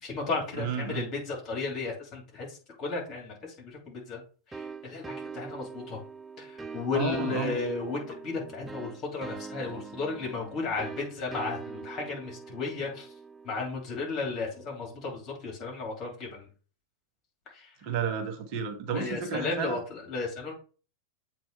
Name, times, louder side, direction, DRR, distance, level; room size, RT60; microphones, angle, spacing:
voice 1, 0.0-4.2 4.5-6.0 6.4-13.1 13.4-16.5 17.5-17.7 18.9-20.5, left 4 dB, 30° left, -1 dB, 2.8 m, -34 dB
voice 2, 0.6-1.0 6.9-7.6 17.8-19.8, right 5 dB, 40° right, 4 dB, 1.0 m, -31 dB
sound 1, 4.5-15.0, right 5 dB, 10° right, 0.5 m, -43 dB
7.5 x 3.0 x 4.6 m, 0.39 s
figure-of-eight pair, 90°, 0 cm